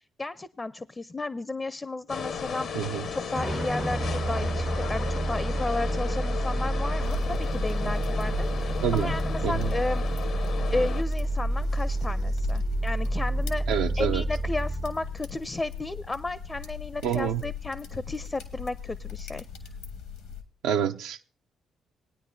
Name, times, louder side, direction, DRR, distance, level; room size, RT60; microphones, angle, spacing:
voice 1, 0.0-10.1 10.7-13.6 14.0-19.4, left 2 dB, 25° left, 0.5 m, -33 dB
sound 1, 2.1-11.0, left 6 dB, 65° left, 0.8 m, -35 dB
sound 2, 3.4-16.1, right 1 dB, 20° right, 0.5 m, -29 dB
sound 3, 7.0-20.4, left 6 dB, 85° left, 1.4 m, -40 dB
voice 2, 13.7-14.2 17.0-17.4 20.6-21.2, right 9 dB, 75° right, 0.5 m, -27 dB
19.5 x 9.5 x 2.7 m
hypercardioid pair, 50°, 0 cm